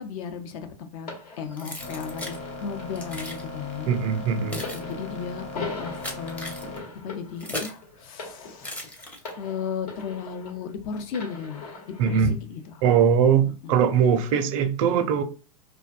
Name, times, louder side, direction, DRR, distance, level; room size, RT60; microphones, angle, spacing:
voice 1, 0.0-3.9 4.5-6.5 7.0-9.1 9.4-12.8 13.4-13.9, left 6 dB, 60° left, 0.6 m, -35 dB
sound 1, 1.1-10.7 11.1-12.1 12.9-13.1, left 3 dB, 75° left, 1.1 m, -41 dB
Keys jangling, 1.6-2.4 3.0-3.4 4.2-7.9 8.6-9.5, left 1 dB, 5° left, 0.5 m, -37 dB
sound 2, 1.8-6.8, left 2 dB, 35° left, 1.1 m, -38 dB
voice 2, 3.9-4.6 12.0-12.4 12.8-15.2, right 7 dB, 55° right, 0.4 m, -21 dB
2.6 x 2.2 x 2.3 m
hypercardioid pair, 110°, 20 cm